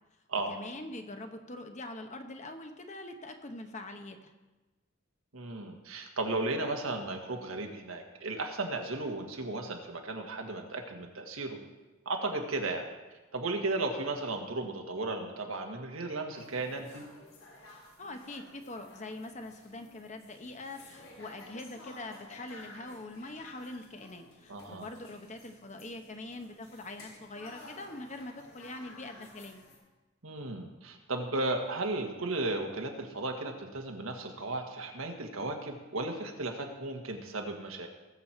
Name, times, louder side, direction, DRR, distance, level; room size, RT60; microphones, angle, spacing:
voice 1, 0.5-4.3 18.0-29.6, left 2 dB, 35° left, 6 dB, 1.0 m, -43 dB
voice 2, 5.3-11.6 12.0-12.9 13.3-17.0 24.5-24.9 30.2-37.9, right 2 dB, 85° right, 3 dB, 1.7 m, -35 dB
sound 1, 16.3-29.8, left 2 dB, 85° left, 3.4 m, -53 dB
19.0 x 7.5 x 4.4 m, 1.1 s
head